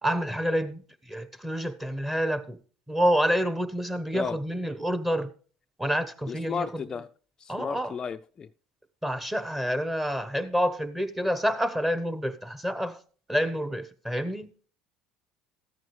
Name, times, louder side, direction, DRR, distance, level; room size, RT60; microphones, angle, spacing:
voice 1, 0.0-2.6 2.9-5.3 5.8-6.8 7.5-7.9 9.0-13.0 13.3-14.5, equal, 10° right, 1.1 m, -28 dB
voice 2, 6.3-7.1 7.4-8.5, left 6 dB, 30° left, 0.4 m, -33 dB
14.0 x 9.0 x 3.2 m
supercardioid pair, 85°, 2 cm